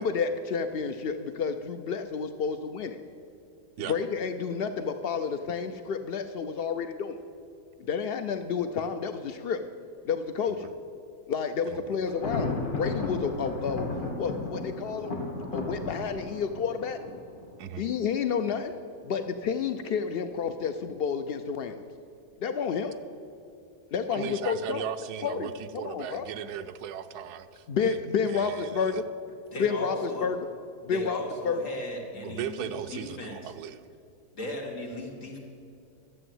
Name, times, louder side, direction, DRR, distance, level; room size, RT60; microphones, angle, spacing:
voice 1, 0.0-3.0 3.8-7.2 7.8-9.6 10.0-10.7 11.3-15.1 15.5-17.0 17.8-18.7 19.0-21.8 22.4-22.9 23.9-24.8 25.2-26.3 27.7-29.0 29.6-30.4 30.8-31.2 31.4-31.6, left 6 dB, 80° left, 8 dB, 0.5 m, -30 dB
Thunder, 12.1-17.9, left 3 dB, 35° left, 2.0 m, -34 dB
voice 2, 24.1-28.0 28.3-29.0 32.1-33.8, right 9 dB, 90° right, 11 dB, 1.2 m, -37 dB
voice 3, 29.5-30.3 30.9-33.5 34.3-35.4, left 1 dB, 55° left, 0 dB, 2.4 m, -37 dB
12.0 x 7.8 x 7.8 m, 2.4 s
omnidirectional pair, 1.7 m